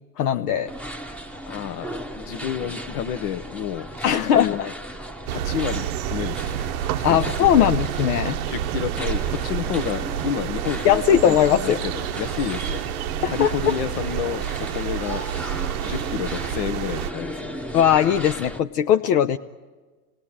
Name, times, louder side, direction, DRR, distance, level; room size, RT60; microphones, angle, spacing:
voice 1, 0.2-0.7 4.0-4.7 7.0-8.4 10.8-11.8 13.2-13.5 17.7-19.4, left 9 dB, 85° left, 7 dB, 0.7 m, -19 dB
sound 1, 0.7-18.6, equal, 5° left, 0.9 m, -36 dB
voice 2, 1.5-1.9 2.1-4.7 5.3-6.6 7.0-7.2 7.6-7.7 8.4-12.8 13.3-15.2 15.8-17.5, left 10 dB, 65° left, 13 dB, 1.1 m, -30 dB
sound 2, 5.3-17.1, right 12 dB, 70° right, 0.7 m, -29 dB
27.5 x 18.5 x 8.7 m, 1.4 s
hypercardioid pair, 95°, 46 cm